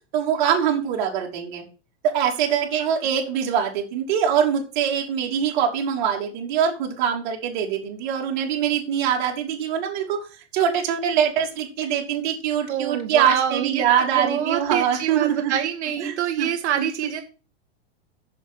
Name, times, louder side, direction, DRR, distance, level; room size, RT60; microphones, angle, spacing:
voice 1, 0.1-1.6 2.0-10.2 10.5-15.6 16.0-16.5 16.8-16.9, right 8 dB, 45° right, 1 dB, 3.1 m, -23 dB
voice 2, 12.7-17.2, right 9 dB, 85° right, 4 dB, 1.6 m, -26 dB
7.1 x 7.0 x 6.2 m, 0.34 s
supercardioid pair, 170°, 33 cm